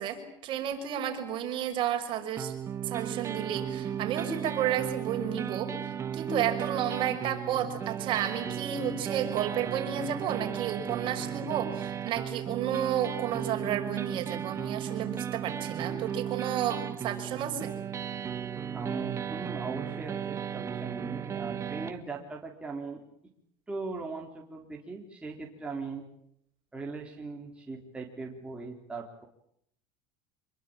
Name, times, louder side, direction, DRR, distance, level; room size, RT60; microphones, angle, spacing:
voice 1, 0.0-2.5 2.8-5.7 6.1-17.7, right 9 dB, 45° right, 5 dB, 5.9 m, -32 dB
sound 1, 2.4-21.9, right 8 dB, 25° right, 1.7 m, -35 dB
voice 2, 18.7-23.0 23.7-26.0 26.7-29.2, right 4 dB, 10° right, -1 dB, 3.9 m, -39 dB
26.5 x 23.0 x 8.9 m, 0.71 s
cardioid pair, 140°, 11 cm